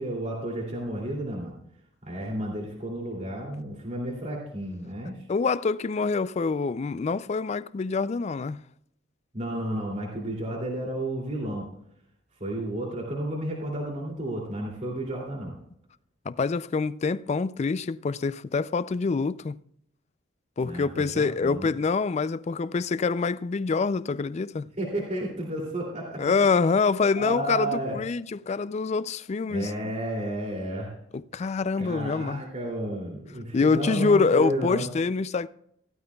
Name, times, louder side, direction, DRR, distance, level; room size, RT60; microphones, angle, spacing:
voice 1, 0.0-1.5 2.0-5.2 9.3-11.7 12.4-15.6 20.6-21.7 24.8-26.3 27.2-27.9 29.5-30.9 31.8-34.8, right 1 dB, 35° right, 2.7 m, -32 dB
voice 2, 5.3-8.6 16.3-19.6 20.6-24.7 26.2-29.9 31.3-32.4 33.5-35.5, left 4 dB, 35° left, 0.3 m, -25 dB
16.5 x 12.5 x 2.3 m
head